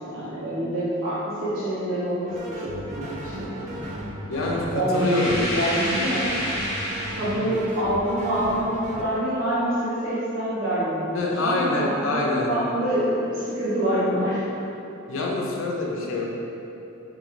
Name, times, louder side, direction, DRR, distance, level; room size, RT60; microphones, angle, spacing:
voice 1, 0.0-3.8 4.5-6.3 7.2-14.4, right 1 dB, 65° right, -11 dB, 0.8 m, -26 dB
sound 1, 2.2-9.0, right 1 dB, 35° right, 0.4 m, -35 dB
voice 2, 4.3-5.4 11.1-12.5 15.1-16.2, left 2 dB, 80° left, -2 dB, 0.5 m, -25 dB
sound 2, 4.9-7.7, equal, 50° left, 1.1 m, -29 dB
3.6 x 3.0 x 2.5 m, 3.0 s
head